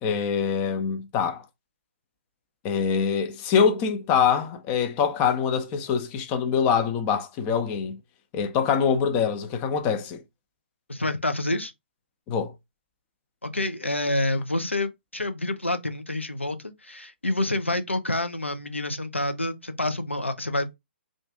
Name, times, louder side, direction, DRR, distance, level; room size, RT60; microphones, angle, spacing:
voice 1, 0.0-1.4 2.6-8.0 8.3-10.2 12.3-12.5, left 6 dB, 25° left, 0.5 m, -24 dB
voice 2, 10.9-11.7 13.4-20.7, left 2 dB, 85° left, 0.5 m, -28 dB
2.5 x 2.4 x 3.4 m
figure-of-eight pair, 125°, 6 cm